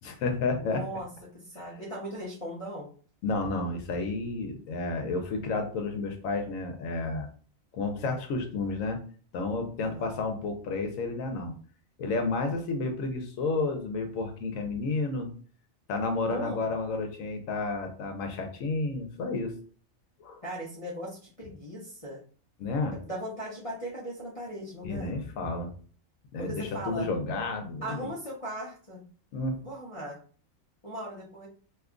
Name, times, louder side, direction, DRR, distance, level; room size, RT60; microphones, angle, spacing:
voice 1, 0.0-0.8 3.2-7.3 7.7-9.0 9.3-11.5 12.0-15.3 15.9-19.6 20.2-20.4 22.6-23.0 24.8-25.7 26.3-28.1 29.3-29.6, left 3 dB, 75° left, 5 dB, 1.0 m, -31 dB
voice 2, 0.6-1.1 1.5-2.9 9.8-10.1 16.2-16.6 20.4-22.2 22.9-25.1 26.4-27.1 27.8-29.0 29.6-30.2 30.8-31.5, equal, 35° left, -7 dB, 0.6 m, -38 dB
2.8 x 2.3 x 3.6 m, 0.43 s
omnidirectional pair, 1.4 m